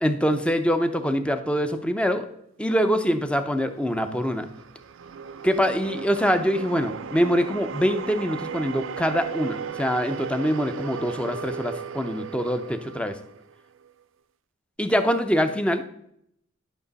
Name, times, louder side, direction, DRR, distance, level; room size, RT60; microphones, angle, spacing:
voice 1, 0.0-2.3 2.6-4.5 5.4-13.2 14.8-15.8, equal, 5° left, 8 dB, 0.7 m, -24 dB
sound 1, 3.5-13.9, right 6 dB, 70° right, 0.4 m, -36 dB
11.0 x 6.0 x 4.0 m, 0.72 s
head